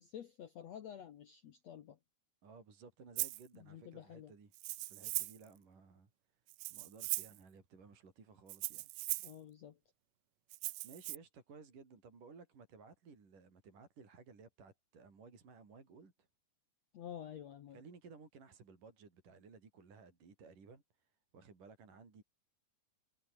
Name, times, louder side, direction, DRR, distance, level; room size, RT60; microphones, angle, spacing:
voice 1, 0.0-2.0 3.5-4.3 9.2-9.8 16.9-17.8, left 9 dB, 70° left, 1.6 m, -50 dB
voice 2, 2.4-4.5 4.9-6.1 6.7-8.9 10.6-16.3 17.7-22.2, right 5 dB, 50° right, 6.5 m, -58 dB
Rattle (instrument), 3.2-3.4 4.5-5.4 6.5-7.4 8.5-9.3 10.5-11.2, right 22 dB, 80° right, 2.3 m, -39 dB
omnidirectional pair, 4.7 m